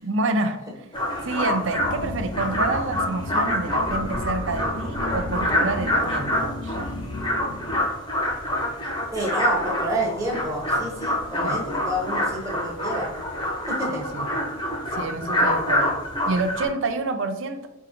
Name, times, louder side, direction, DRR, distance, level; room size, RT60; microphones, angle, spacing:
voice 1, 0.0-0.6 1.2-6.8 11.4-11.6 13.9-14.3 14.9-15.9 16.3-17.7, right 3 dB, 60° right, 8 dB, 0.5 m, -28 dB
sound 1, 0.9-16.7, left 1 dB, 25° left, 0.8 m, -26 dB
sound 2, 1.7-7.8, left 2 dB, 45° left, 0.4 m, -34 dB
voice 2, 9.1-13.1 13.7-14.0, right 1 dB, 15° right, -3 dB, 0.9 m, -29 dB
4.9 x 3.5 x 2.9 m, 0.92 s
head